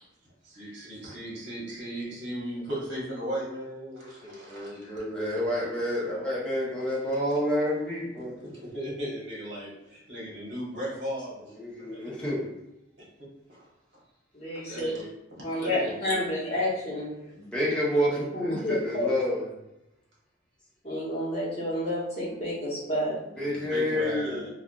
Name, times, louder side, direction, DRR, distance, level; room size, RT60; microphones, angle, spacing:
voice 1, 0.4-5.0 8.2-12.1 13.5-13.7 14.7-15.1 15.4-16.0 23.4-24.5, equal, 60° right, -6 dB, 1.3 m, -37 dB
voice 2, 4.5-8.3 11.6-12.4 17.4-19.4 23.4-24.5, equal, 5° left, -7 dB, 0.8 m, -29 dB
voice 3, 14.3-14.9 15.4-17.1 17.6-18.0 18.3-19.1 20.8-23.1, left 1 dB, 30° left, -9 dB, 1.0 m, -30 dB
3.2 x 2.4 x 2.4 m, 0.90 s
head